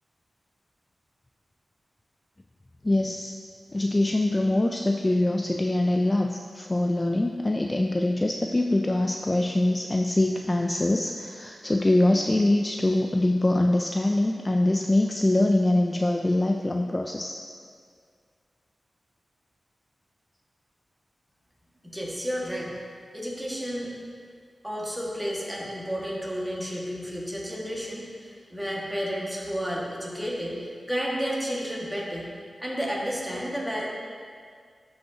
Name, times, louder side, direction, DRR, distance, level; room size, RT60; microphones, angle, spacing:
voice 1, 2.8-3.4 3.7-17.4, left 1 dB, 25° left, 2 dB, 0.3 m, -24 dB
voice 2, 21.8-22.7 23.1-23.9 24.6-32.3 32.6-33.9, equal, 5° right, -4 dB, 1.7 m, -31 dB
12.0 x 5.5 x 2.8 m, 2.1 s
wide cardioid pair, 80°, 0 cm